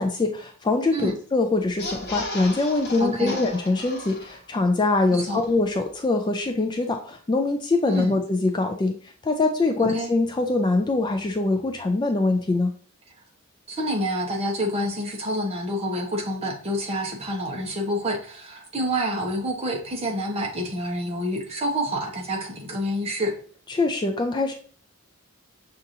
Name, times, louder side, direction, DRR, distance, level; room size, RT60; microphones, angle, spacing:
voice 1, 0.0-12.7 23.7-24.5, left 3 dB, 20° left, 4 dB, 0.3 m, -23 dB
sound 1, 1.7-4.6 5.0-5.1 5.3-5.5, left 1 dB, 50° left, 1.1 m, -35 dB
voice 2, 3.0-3.4 5.1-5.4 7.8-8.2 9.9-10.1 13.7-23.3, equal, 30° right, 1 dB, 0.8 m, -28 dB
6.5 x 2.5 x 2.7 m, 0.43 s
head